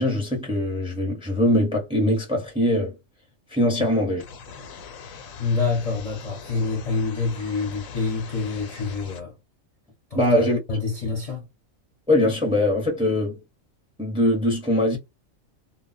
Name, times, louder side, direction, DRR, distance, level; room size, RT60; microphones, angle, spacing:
voice 1, 0.0-3.0 3.5-4.2 10.1-10.6 12.1-13.4 14.0-15.0, left 1 dB, 5° right, 0.7 m, -22 dB
sound 1, 4.2-9.2, left 5 dB, 85° left, 1.1 m, -41 dB
voice 2, 5.4-9.4 10.1-11.5, left 4 dB, 35° left, 0.7 m, -27 dB
2.3 x 2.1 x 3.9 m
omnidirectional pair, 1.4 m